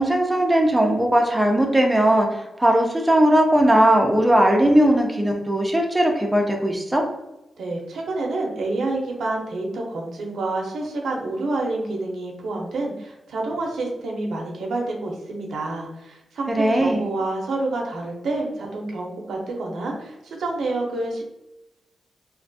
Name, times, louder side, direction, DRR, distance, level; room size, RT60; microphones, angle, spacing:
voice 1, 0.0-7.0 16.5-17.1, right 1 dB, 10° right, 1 dB, 0.4 m, -18 dB
voice 2, 7.6-21.2, right 2 dB, 85° right, 0 dB, 0.5 m, -28 dB
2.4 x 2.2 x 2.6 m, 0.93 s
wide cardioid pair, 160°, 0 cm